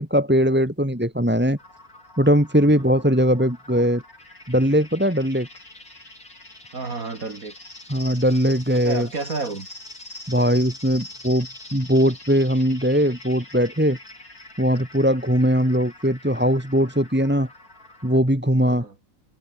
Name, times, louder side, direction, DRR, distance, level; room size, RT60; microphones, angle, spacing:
voice 1, 0.0-1.6 2.2-4.0 4.5-5.5 7.9-9.1 10.3-14.0 14.6-17.5 18.0-18.9, equal, 5° right, 3.0 m, -20 dB
sound 1, 1.6-18.2, left 2 dB, 75° left, 8.2 m, -44 dB
voice 2, 6.7-7.5 8.7-9.7 18.6-18.9, right 4 dB, 65° right, 3.4 m, -31 dB
omnidirectional pair, 1.6 m